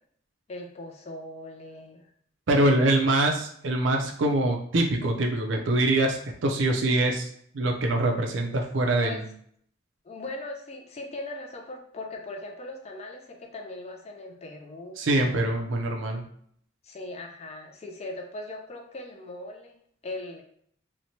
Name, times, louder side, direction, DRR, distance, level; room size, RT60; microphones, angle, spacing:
voice 1, 0.5-2.0 2.6-3.0 9.0-9.2 10.0-15.6 16.8-20.4, left 2 dB, 30° left, 3 dB, 0.4 m, -39 dB
voice 2, 2.5-7.3 7.5-9.2 15.0-16.2, right 1 dB, 65° right, 2 dB, 0.5 m, -24 dB
2.9 x 2.1 x 2.7 m, 0.64 s
head